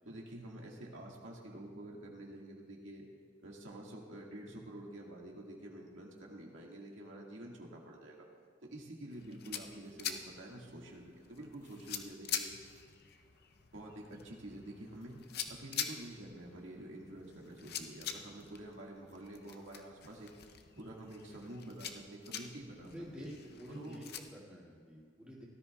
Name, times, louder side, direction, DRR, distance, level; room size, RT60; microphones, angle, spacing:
voice 1, 0.0-3.1 3.4-8.3 8.7-12.5 13.7-15.2 15.5-20.3 20.7-23.3 23.7-24.0, right 1 dB, 85° right, -2 dB, 1.8 m, -48 dB
sound 1, 9.1-24.2, left 8 dB, 55° left, 0.6 m, -45 dB
voice 2, 22.9-25.4, equal, 5° right, -6 dB, 2.2 m, -49 dB
18.0 x 13.0 x 2.3 m, 2.1 s
head